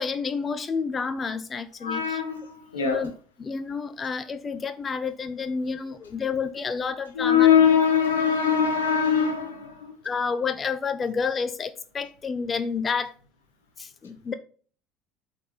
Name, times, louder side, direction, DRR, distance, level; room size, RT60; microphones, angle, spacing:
voice 1, 0.0-2.2 2.8-3.1 3.4-7.5 10.0-13.1 13.8-14.3, left 5 dB, 30° left, 0.7 m, -29 dB
voice 2, 1.8-3.1 7.1-10.0, left 8 dB, 85° left, 1.5 m, -22 dB
8.0 x 4.4 x 5.5 m
hypercardioid pair, 70°, 0 cm